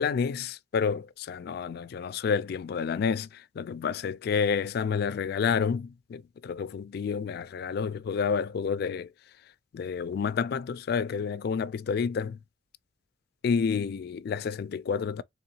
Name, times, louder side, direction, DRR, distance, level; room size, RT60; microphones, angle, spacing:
voice 1, 0.0-9.1 9.7-12.4 13.4-15.2, left 6 dB, 55° left, 0.3 m, -29 dB
3.7 x 3.4 x 2.7 m
head